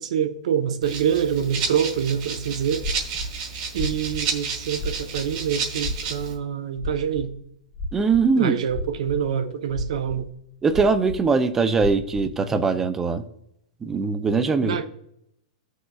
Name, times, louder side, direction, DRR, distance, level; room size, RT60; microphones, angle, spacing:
voice 1, 0.0-2.9 3.7-7.3 8.4-10.3 14.6-14.9, right 8 dB, 65° right, 0.8 m, -26 dB
Rattle (instrument), 0.8-6.3, right 5 dB, 35° right, 1.5 m, -31 dB
sound 1, 2.8-3.3 3.7-4.3 4.8-5.3 5.8-6.4 6.8-7.4 7.7-8.3 8.7-9.2 9.7-10.3 10.7-11.2 11.8-12.3, left 1 dB, 20° left, 1.0 m, -32 dB
voice 2, 7.9-8.5 10.6-13.2 13.8-14.8, right 4 dB, 10° right, 0.4 m, -21 dB
15.0 x 6.3 x 2.3 m
supercardioid pair, 175°, 4 cm